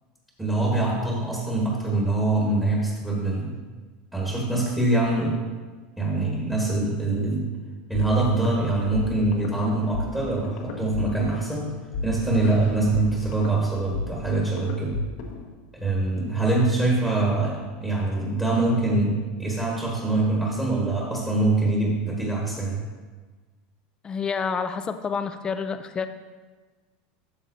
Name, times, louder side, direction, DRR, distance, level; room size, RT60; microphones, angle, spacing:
voice 1, 0.4-3.5 4.1-5.4 6.0-7.5 7.9-11.8 12.0-15.0 15.7-22.8, right 2 dB, 5° right, -4 dB, 1.5 m, -24 dB
sound 1, 7.9-15.5, left 4 dB, 80° left, 1.4 m, -34 dB
voice 2, 24.0-26.1, left 5 dB, 20° left, 9 dB, 0.4 m, -28 dB
13.0 x 7.2 x 2.7 m, 1.4 s
supercardioid pair, 150°, 5 cm